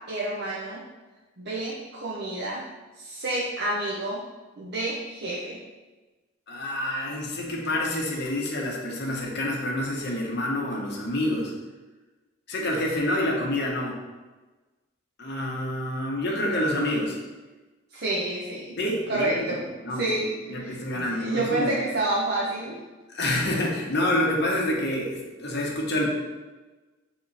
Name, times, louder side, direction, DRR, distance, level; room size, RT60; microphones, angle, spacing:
voice 1, 0.1-0.8 1.4-2.6 3.0-4.2 4.6-5.6 17.9-18.8 19.1-19.7 20.0-22.8, right 2 dB, 55° right, -4 dB, 0.8 m, -29 dB
voice 2, 6.5-11.5 12.5-13.9 15.2-17.2 18.8-19.4 19.8-20.1 20.5-21.7 23.1-26.1, left 1 dB, 55° left, -2 dB, 1.3 m, -27 dB
7.1 x 4.2 x 4.1 m, 1.2 s
head